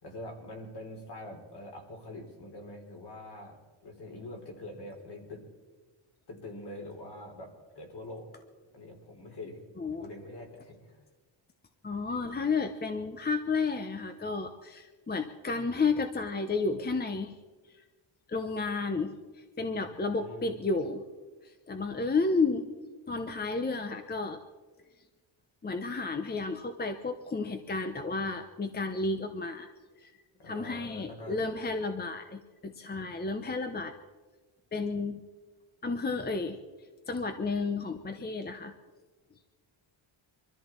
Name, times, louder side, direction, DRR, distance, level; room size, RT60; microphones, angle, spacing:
voice 1, 0.0-5.4 6.3-8.3 8.7-11.0 19.8-20.5 30.4-31.4, left 1 dB, 50° left, 2 dB, 3.5 m, -45 dB
voice 2, 9.8-10.1 11.8-17.4 18.3-21.0 21.4-22.7 23.1-24.4 25.6-29.7 30.0-30.1 30.4-33.9 34.7-35.2 35.8-36.6 37.1-38.7, left 4 dB, 20° left, 7 dB, 0.8 m, -32 dB
24.0 x 13.5 x 4.4 m, 1.3 s
wide cardioid pair, 145°, 50 cm